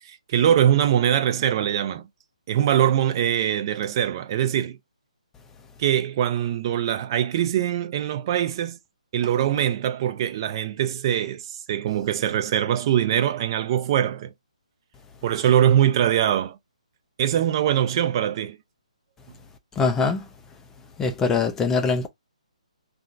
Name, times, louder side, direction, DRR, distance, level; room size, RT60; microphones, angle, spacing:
voice 1, 0.0-2.1 2.5-4.8 5.8-8.8 9.1-14.3 15.2-16.6 17.2-18.6, right 10 dB, 35° right, 0.6 m, -22 dB
voice 2, 19.8-20.3 21.0-22.1, left 4 dB, 10° left, 0.4 m, -22 dB
3.6 x 2.2 x 2.5 m
hypercardioid pair, 145°, 4 cm